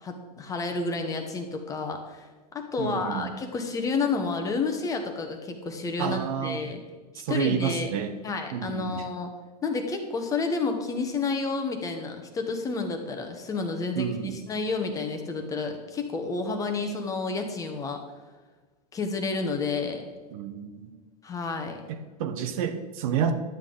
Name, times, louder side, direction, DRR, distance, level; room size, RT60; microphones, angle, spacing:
voice 1, 0.0-2.3 2.5-6.8 7.3-7.9 8.2-9.3 9.6-18.0 18.9-20.0 21.2-21.8, left 4 dB, 15° left, 4 dB, 1.0 m, -30 dB
voice 2, 2.8-3.3 6.0-6.6 7.1-8.1 8.5-9.1 13.9-14.4 20.3-20.9 21.9-23.3, right 8 dB, 60° right, 8 dB, 1.0 m, -30 dB
11.5 x 8.2 x 3.8 m, 1.3 s
supercardioid pair, 150°, 21 cm